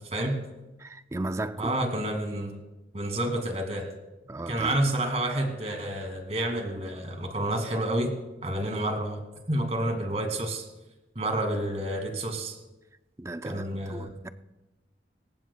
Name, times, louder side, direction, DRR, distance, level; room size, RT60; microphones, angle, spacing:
voice 1, 0.8-1.7 4.3-4.8 13.2-14.3, right 2 dB, 15° right, 0.4 m, -35 dB
voice 2, 1.6-2.6 2.9-3.9 4.5-8.1 8.4-9.2 9.5-10.6 11.2-12.6 13.4-14.3, right 1 dB, 35° right, 2.2 m, -29 dB
26.0 x 15.0 x 2.3 m
head